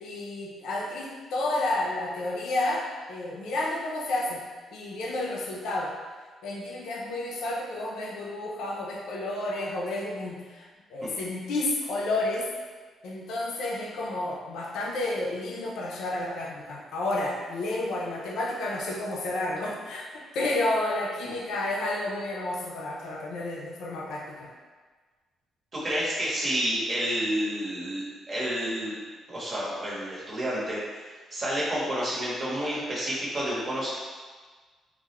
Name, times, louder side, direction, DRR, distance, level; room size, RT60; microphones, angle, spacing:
voice 1, 0.0-4.4 4.7-5.9 6.4-12.5 13.0-24.5, left 2 dB, 80° left, -2 dB, 0.4 m, -31 dB
voice 2, 25.7-29.0 29.3-30.8 31.3-33.9, equal, 40° right, -7 dB, 0.9 m, -29 dB
2.3 x 2.0 x 2.9 m, 1.4 s
cardioid pair, 90°, 0 cm